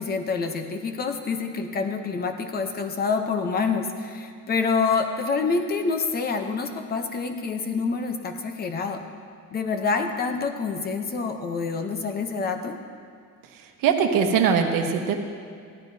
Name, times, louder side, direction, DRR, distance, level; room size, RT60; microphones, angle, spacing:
voice 1, 0.0-9.0 9.5-12.8, left 4 dB, 25° left, 6 dB, 0.7 m, -27 dB
voice 2, 13.8-15.2, right 6 dB, 70° right, 4 dB, 1.1 m, -21 dB
16.0 x 12.0 x 2.7 m, 2.2 s
cardioid pair, 175°, 35 cm